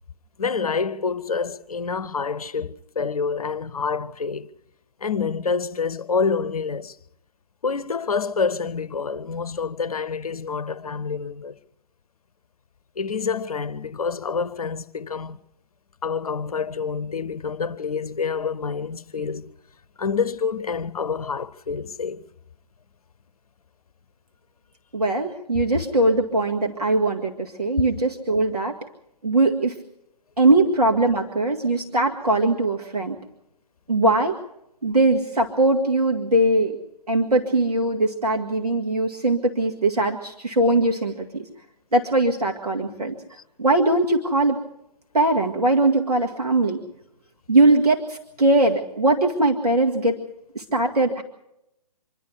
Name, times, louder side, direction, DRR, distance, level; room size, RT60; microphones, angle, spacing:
voice 1, 0.4-4.5 5.0-7.0 7.6-11.6 13.0-15.4 16.0-19.5 20.0-22.2 43.4-43.5, left 5 dB, 60° left, 0.8 m, -27 dB
voice 2, 24.9-28.8 29.2-29.8 30.4-33.2 33.9-34.4 34.8-36.8 37.1-41.4 41.9-43.1 43.6-44.6 45.1-46.8 47.5-50.2 50.6-51.2, right 2 dB, 70° right, 2.0 m, -21 dB
26.0 x 11.5 x 9.6 m
figure-of-eight pair, 135°, 21 cm